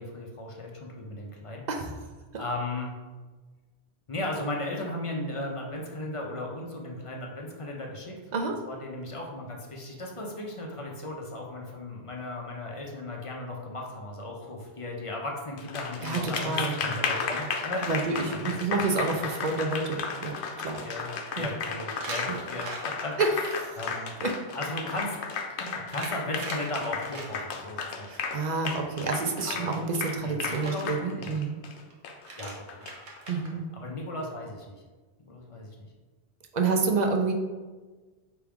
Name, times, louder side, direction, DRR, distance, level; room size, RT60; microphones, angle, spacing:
voice 1, 0.0-1.7 2.4-2.9 4.1-8.2 8.7-18.8 19.1-19.3 20.8-21.1 21.4-23.2 23.7-24.1 24.5-25.1 25.6-28.1 29.4-29.7 30.2-31.4 32.4-32.8 33.7-34.8 35.2-35.7, left 1 dB, 40° left, 0 dB, 0.5 m, -36 dB
Applause, 15.6-33.3, left 5 dB, 90° left, 0.9 m, -34 dB
voice 2, 16.0-16.8 17.9-20.8 21.4-21.5 22.3-22.4 23.2-23.3 24.2-24.3 28.1-31.6 33.3-33.6 36.5-37.3, right 4 dB, 55° right, 3 dB, 0.5 m, -28 dB
sound 1, 17.5-17.6 18.2-18.3 18.5-18.6 21.9-23.5 24.8-27.6 29.1-29.6 30.5-30.7 31.9-32.0 32.2-33.5, right 2 dB, 85° right, 1.2 m, -41 dB
4.7 x 3.1 x 3.5 m, 1.3 s
omnidirectional pair, 1.1 m